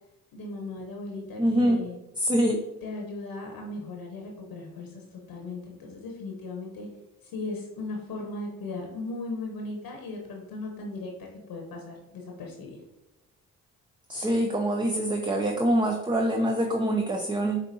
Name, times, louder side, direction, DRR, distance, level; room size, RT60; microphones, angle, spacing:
voice 1, 0.3-2.0 2.8-6.9 7.3-12.8, left 2 dB, 65° left, 0 dB, 0.9 m, -37 dB
voice 2, 1.4-1.8 2.2-2.6 14.1-17.6, right 1 dB, 10° right, 3 dB, 0.5 m, -25 dB
5.1 x 2.6 x 2.7 m, 0.97 s
hypercardioid pair, 45°, 38 cm